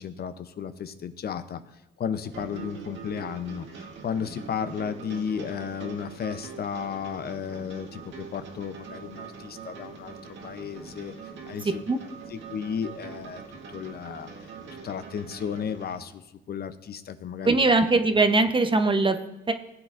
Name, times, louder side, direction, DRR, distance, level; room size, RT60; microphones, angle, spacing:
voice 1, 0.0-10.2 10.4-11.1 11.5-11.8 12.3-13.4 13.7-14.5 14.8-17.5, left 7 dB, 50° left, 10 dB, 0.7 m, -34 dB
sound 1, 2.2-16.0, right 5 dB, 70° right, 1.8 m, -43 dB
voice 2, 17.5-19.2 19.5-19.6, right 3 dB, 25° right, 8 dB, 0.8 m, -21 dB
17.0 x 7.8 x 2.6 m, 1.0 s
cardioid pair, 90°, 20 cm